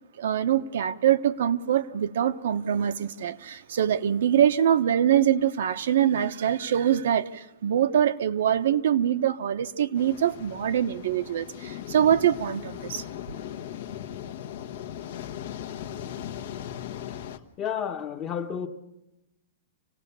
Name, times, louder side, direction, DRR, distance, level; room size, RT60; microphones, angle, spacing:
voice 1, 0.2-13.0, right 10 dB, 65° right, 1.0 m, -24 dB
sound 1, 10.0-17.4, left 10 dB, 60° left, 1.2 m, -38 dB
voice 2, 17.6-18.7, left 8 dB, 20° left, 1.1 m, -31 dB
26.5 x 18.0 x 7.0 m
supercardioid pair, 175°, 0 cm